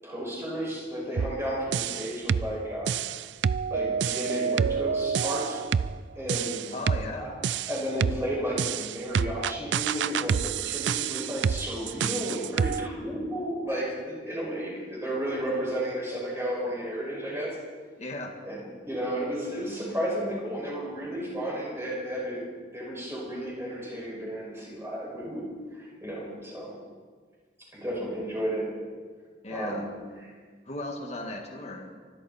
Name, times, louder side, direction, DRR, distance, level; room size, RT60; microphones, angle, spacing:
voice 1, 0.0-2.9 3.7-5.6 6.1-6.7 7.2-7.3 7.7-17.6 18.4-18.6 18.9-22.5 22.7-25.4 25.7-26.8 27.7-28.7 29.5-29.9, equal, 15° right, -5 dB, 6.2 m, -33 dB
sound 1, 1.2-1.4 1.7-2.5 2.9-6.0 6.3-7.1 7.4-8.2 8.6-12.9, right 7 dB, 90° right, 0.4 m, -28 dB
voice 2, 6.7-7.3 18.0-18.3 29.4-29.8 30.7-31.9, left 2 dB, 40° left, 1 dB, 1.9 m, -36 dB
24.5 x 13.0 x 4.4 m, 1.5 s
head